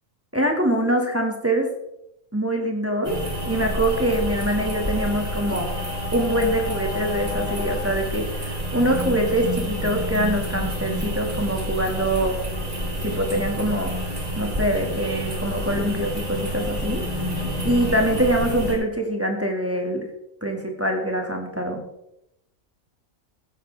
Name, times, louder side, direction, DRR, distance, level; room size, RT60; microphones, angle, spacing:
voice 1, 0.3-1.7 2.3-3.2 3.4-5.7 6.1-12.4 13.0-13.9 14.4-17.0 17.7-20.0 20.4-21.8, right 1 dB, 10° right, 1 dB, 1.9 m, -24 dB
sound 1, 3.0-18.7, equal, 30° right, 3.0 m, -28 dB
15.0 x 9.9 x 3.4 m, 0.83 s
omnidirectional pair, 1.4 m